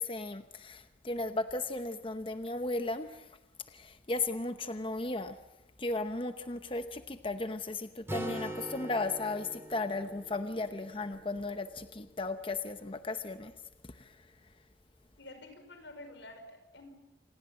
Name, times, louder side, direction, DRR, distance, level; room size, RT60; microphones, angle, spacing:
voice 1, 0.0-3.1 3.7-5.4 5.8-13.5, left 2 dB, 30° left, 9 dB, 0.9 m, -35 dB
Acoustic guitar, 8.1-11.8, right 1 dB, 15° right, 3.2 m, -42 dB
voice 2, 15.2-16.9, left 2 dB, 90° left, 7 dB, 5.4 m, -49 dB
27.5 x 19.5 x 7.8 m, 0.98 s
head